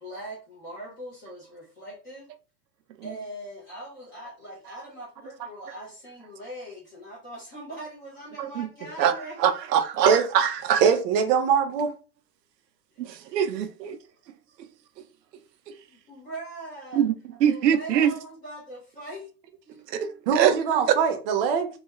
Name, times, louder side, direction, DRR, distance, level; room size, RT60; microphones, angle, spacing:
voice 1, 0.0-2.3 3.0-9.4 13.2-13.3 15.9-17.0 17.4-19.3 19.6-19.8, right 1 dB, 15° left, 0.4 m, -41 dB
voice 2, 8.4-8.7 9.0-10.8 13.0-14.0 15.7-15.8 16.9-17.1 17.4-18.1 19.9-20.5 20.9-21.0, right 9 dB, 80° right, 0.6 m, -23 dB
voice 3, 10.8-11.9 20.3-21.7, right 7 dB, 35° right, 0.6 m, -22 dB
2.3 x 2.1 x 3.0 m
hypercardioid pair, 130°, 49 cm